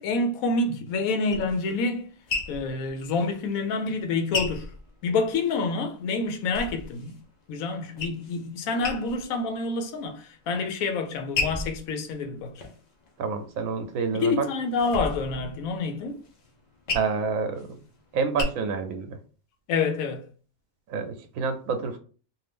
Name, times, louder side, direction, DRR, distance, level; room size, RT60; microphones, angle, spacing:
voice 1, 0.0-2.0 2.5-4.7 5.0-7.1 7.5-12.5 14.1-16.2 19.7-20.2, left 3 dB, 85° left, 1.0 m, -27 dB
sound 1, 0.9-5.6 6.0-7.2 7.6-8.4 8.8-9.4 9.8-10.4 10.9-13.6 14.1-18.4, left 3 dB, 55° left, 0.4 m, -35 dB
voice 2, 13.2-14.5 16.9-17.8 18.1-19.2 20.9-22.0, right 5 dB, 80° right, 1.0 m, -28 dB
2.6 x 2.6 x 3.4 m
omnidirectional pair, 1.4 m